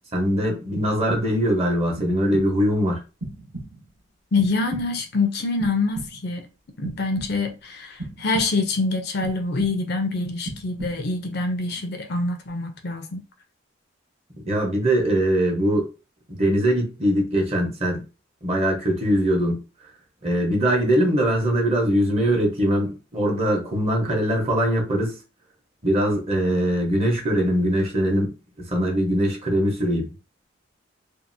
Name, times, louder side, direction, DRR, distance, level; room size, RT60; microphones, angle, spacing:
voice 1, 0.1-3.0 14.4-15.9 16.3-18.0 18.4-19.6 20.2-25.2 25.8-28.3 28.7-30.1, equal, 30° right, 0.9 m, -22 dB
sound 1, 3.2-4.0 4.4-5.2 5.6-6.4 6.8-7.6 8.0-8.8 9.2-10.0 10.4-11.2, right 2 dB, 55° right, 1.1 m, -37 dB
voice 2, 4.3-6.5 6.8-13.2, left 3 dB, 55° left, 0.5 m, -25 dB
2.7 x 2.4 x 2.6 m
head